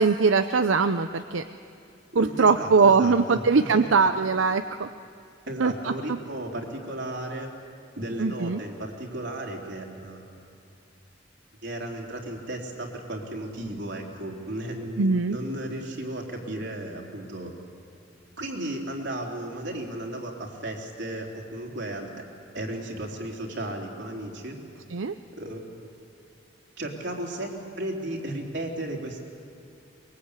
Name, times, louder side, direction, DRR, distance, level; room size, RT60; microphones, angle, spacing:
voice 1, 0.0-1.4 2.1-4.9 5.6-5.7 8.2-8.6 15.0-15.4 24.9-25.1, right 4 dB, 90° right, 9 dB, 0.6 m, -21 dB
voice 2, 2.1-3.9 5.5-7.5 8.0-10.5 11.6-17.5 18.4-22.1 22.5-24.6 25.3-25.9 26.8-29.2, right 1 dB, 65° right, 0 dB, 3.6 m, -34 dB
23.5 x 22.5 x 8.3 m, 2.6 s
head